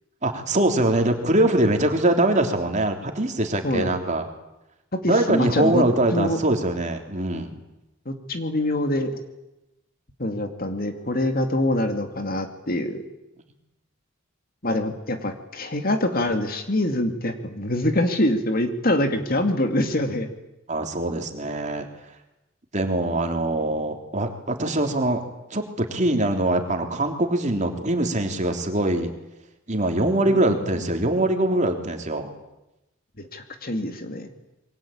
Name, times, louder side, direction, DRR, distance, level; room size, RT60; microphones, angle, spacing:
voice 1, 0.2-4.3 5.0-7.6 20.7-21.9 22.7-25.2 25.5-29.1 29.7-32.3, right 1 dB, 35° right, 4 dB, 3.4 m, -23 dB
voice 2, 3.6-4.0 5.0-5.8 6.1-6.4 8.1-9.2 10.2-13.0 14.6-20.3 30.3-30.4 33.2-34.3, left 1 dB, 45° left, 6 dB, 2.5 m, -25 dB
27.5 x 23.0 x 8.8 m, 0.94 s
head